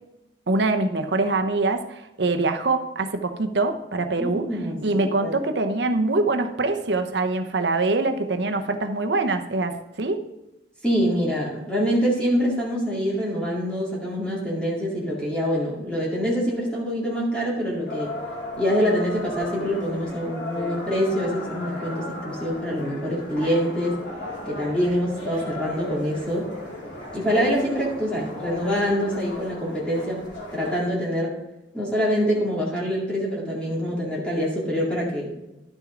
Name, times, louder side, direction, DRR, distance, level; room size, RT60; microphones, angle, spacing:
voice 1, 0.5-4.4 4.8-10.2, right 3 dB, 75° right, 6 dB, 0.9 m, -24 dB
voice 2, 4.2-5.3 10.8-18.1 18.6-24.0 24.5-26.5 27.1-30.2 30.5-31.3 31.7-35.3, equal, 5° left, -6 dB, 2.3 m, -25 dB
sound 1, 17.9-30.8, left 1 dB, 90° left, 2.7 m, -35 dB
11.5 x 6.3 x 3.8 m, 0.92 s
head